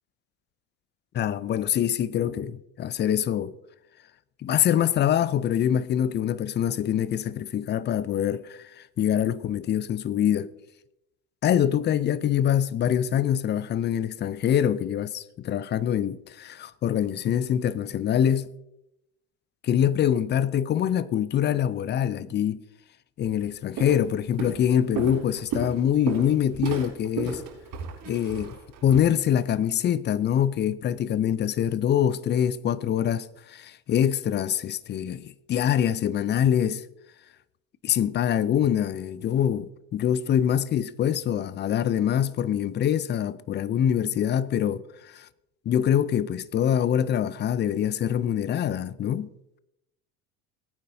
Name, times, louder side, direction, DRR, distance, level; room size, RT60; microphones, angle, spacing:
voice 1, 1.1-3.6 4.4-10.5 11.4-18.5 19.6-22.6 23.2-27.4 28.1-36.8 37.8-45.3 45.7-49.3, left 9 dB, 25° left, 0.5 m, -24 dB
Walk footsteps, 23.2-23.4 23.8-24.1 24.4-29.0, right 6 dB, 45° right, 5.3 m, -33 dB
19.5 x 9.2 x 2.7 m
hypercardioid pair, 80°, 46 cm